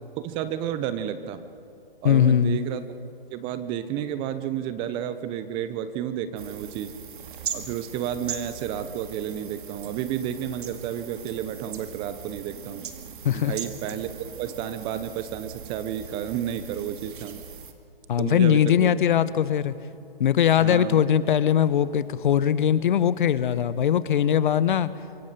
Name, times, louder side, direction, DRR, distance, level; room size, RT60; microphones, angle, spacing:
voice 1, 0.2-1.5 2.0-2.8 3.3-7.0 7.5-12.9 13.3-17.4 18.2-18.9 20.6-21.0, right 10 dB, 15° right, 12 dB, 0.6 m, -31 dB
voice 2, 2.0-2.6 13.2-13.5 18.1-19.7 20.2-24.9, left 9 dB, 55° left, 16 dB, 0.9 m, -21 dB
sound 1, 6.4-17.7, right 7 dB, 60° right, 2.2 m, -40 dB
25.0 x 17.0 x 6.7 m, 2.6 s
hypercardioid pair, 140°, 29 cm